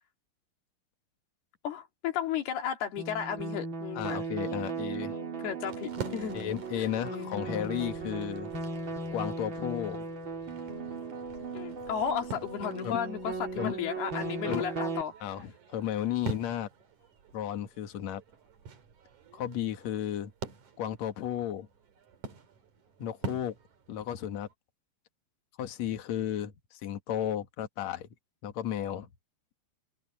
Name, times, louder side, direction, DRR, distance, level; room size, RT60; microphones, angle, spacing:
voice 1, 1.6-4.2 5.4-6.4 6.8-7.3 11.5-15.1, left 8 dB, 80° left, 4.3 m, -34 dB
sound 1, 3.0-15.0, right 3 dB, 30° right, 3.5 m, -37 dB
voice 2, 4.0-5.2 6.3-8.5 9.1-10.1 12.8-13.0 13.6-13.7 14.5-14.7 15.2-16.7 17.3-18.2 19.3-20.3 20.8-21.7 23.0-23.5 23.9-24.5 25.6-28.1 28.4-29.1, left 10 dB, 55° left, 2.4 m, -34 dB
sound 2, 5.7-24.5, right 4 dB, 55° right, 3.9 m, -46 dB
omnidirectional pair, 4.5 m